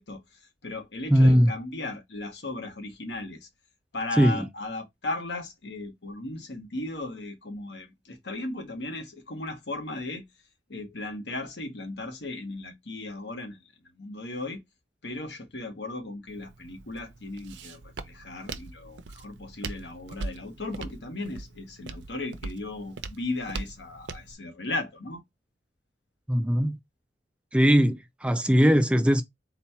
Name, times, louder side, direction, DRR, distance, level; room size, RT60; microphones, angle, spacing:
voice 1, 0.0-3.5 3.9-10.2 10.7-13.6 13.9-14.6 15.0-25.2, left 2 dB, 70° left, 1.1 m, -36 dB
voice 2, 1.1-1.5 4.2-4.5 26.3-26.8 27.5-29.2, equal, 5° right, 0.3 m, -20 dB
Walk footsteps, 16.3-24.3, right 3 dB, 85° right, 0.5 m, -41 dB
4.1 x 2.2 x 4.1 m
head